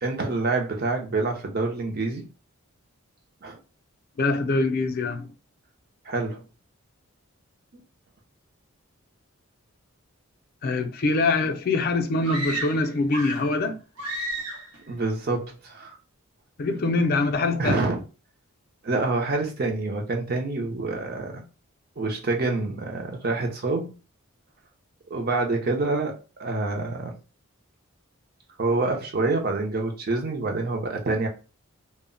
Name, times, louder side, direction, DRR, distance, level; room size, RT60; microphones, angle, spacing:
voice 1, 0.0-2.2 3.4-3.6 6.0-6.5 7.7-7.8 14.9-16.0 17.6-18.0 18.8-21.4 22.0-23.9 25.1-26.1 26.4-27.1 28.6-31.3, right 3 dB, 45° right, 0.5 m, -27 dB
voice 2, 4.2-5.3 10.6-13.8 16.6-17.8, left 3 dB, 45° left, 0.4 m, -24 dB
sound 1, 12.2-13.6 14.0-14.8, right 1 dB, 90° right, 0.8 m, -32 dB
2.1 x 2.0 x 3.6 m
head